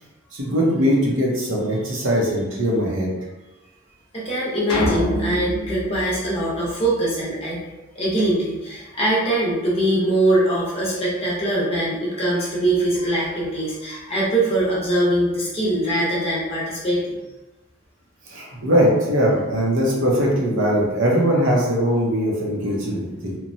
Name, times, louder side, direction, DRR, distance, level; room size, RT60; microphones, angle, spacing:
voice 1, 0.3-3.1 18.3-23.4, equal, 60° right, -3 dB, 0.7 m, -20 dB
voice 2, 4.1-7.6 7.9-17.2, right 1 dB, 25° left, -7 dB, 0.7 m, -22 dB
sound 1, 4.7-7.1, left 1 dB, 80° left, 0.5 m, -26 dB
2.9 x 2.1 x 2.6 m, 1.1 s
head